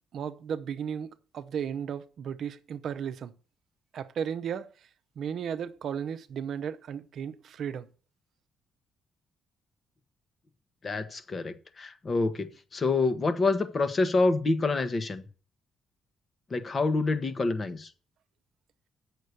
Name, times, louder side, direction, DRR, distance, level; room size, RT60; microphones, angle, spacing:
voice 1, 0.1-3.3 3.9-4.7 5.2-7.9, right 8 dB, 65° right, 0.7 m, -35 dB
voice 2, 10.8-15.2 16.5-17.9, left 3 dB, 35° left, 1.2 m, -27 dB
8.2 x 6.5 x 6.6 m
cardioid pair, 90°, 0 cm